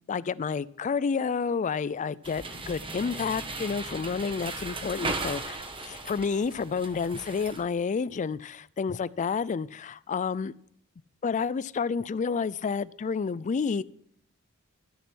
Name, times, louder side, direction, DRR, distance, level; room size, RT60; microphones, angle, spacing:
voice 1, 0.1-10.5 11.2-13.8, left 5 dB, 35° left, 20 dB, 0.3 m, -30 dB
sound 1, 2.2-7.6, right 3 dB, 25° right, 1.2 m, -37 dB
12.0 x 6.7 x 6.1 m, 0.68 s
head